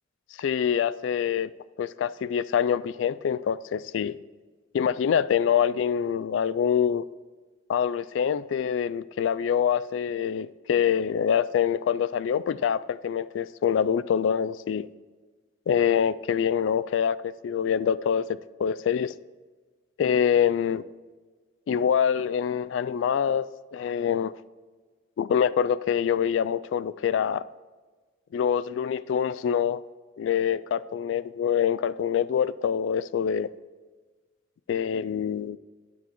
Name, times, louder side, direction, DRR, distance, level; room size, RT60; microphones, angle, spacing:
voice 1, 0.4-1.5 1.8-4.2 4.7-7.1 7.7-14.9 15.7-18.2 18.6-19.1 20.0-20.8 21.7-24.3 25.2-27.4 28.3-29.8 30.2-33.5 34.7-35.6, left 8 dB, 80° left, 0.3 m, -25 dB
20.0 x 7.0 x 3.0 m
head